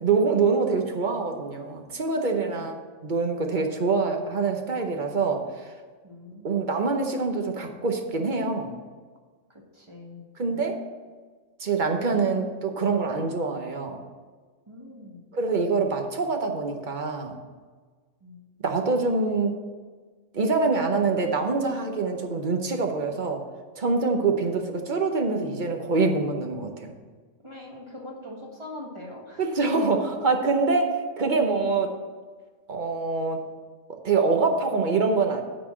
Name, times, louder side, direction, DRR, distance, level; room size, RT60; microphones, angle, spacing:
voice 1, 0.0-2.7 3.0-5.7 6.4-8.7 10.4-10.8 11.6-14.0 15.3-17.4 18.6-19.5 20.3-23.4 23.8-26.9 29.4-31.9 32.7-33.4 34.0-35.4, right 4 dB, 40° right, 4 dB, 0.9 m, -25 dB
voice 2, 2.3-2.7 6.0-6.7 9.5-10.6 14.7-15.2 18.2-18.6 27.4-29.4, left 1 dB, 20° right, -1 dB, 1.4 m, -42 dB
9.4 x 4.2 x 7.3 m, 1.5 s
omnidirectional pair, 1.4 m